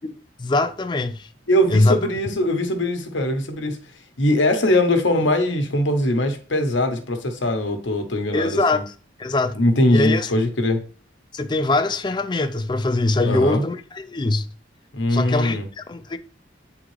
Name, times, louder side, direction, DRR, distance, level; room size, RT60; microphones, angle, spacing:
voice 1, 0.4-1.3 1.7-2.0 8.3-9.6 9.9-10.3 11.3-14.5 15.1-16.2, left 2 dB, 25° left, 0.4 m, -22 dB
voice 2, 1.5-3.8 4.2-8.8 9.5-10.8 13.2-13.6 14.9-15.6, left 1 dB, 80° left, 1.0 m, -21 dB
9.2 x 3.7 x 3.1 m
head